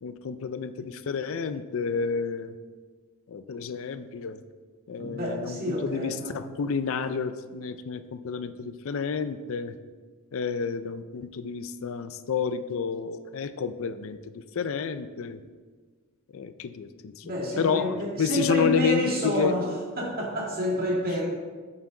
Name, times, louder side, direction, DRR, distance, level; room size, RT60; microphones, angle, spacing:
voice 1, 0.0-2.5 3.3-4.4 4.9-9.7 10.3-15.4 16.3-19.5, left 6 dB, 70° left, 11 dB, 0.4 m, -30 dB
voice 2, 5.0-6.4 17.2-19.6 20.0-21.3, equal, 45° right, -2 dB, 1.9 m, -29 dB
9.0 x 5.9 x 3.8 m, 1.5 s
head